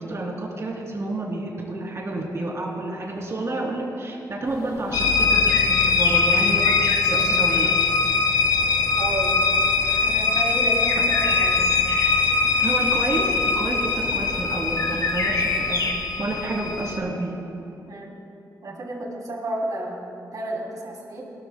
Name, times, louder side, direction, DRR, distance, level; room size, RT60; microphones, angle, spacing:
voice 1, 0.0-7.7 12.6-17.3, right 2 dB, 40° right, -2 dB, 3.2 m, -29 dB
sound 1, 4.5-15.9, left 3 dB, 55° left, 1.5 m, -32 dB
sound 2, 4.9-17.0, left 4 dB, 80° left, 0.9 m, -22 dB
voice 2, 9.0-9.4 10.0-11.7 17.9-18.1 18.6-21.2, right 1 dB, 55° right, -2 dB, 3.1 m, -31 dB
22.0 x 13.0 x 2.3 m, 2.8 s
cardioid pair, 100°, 7 cm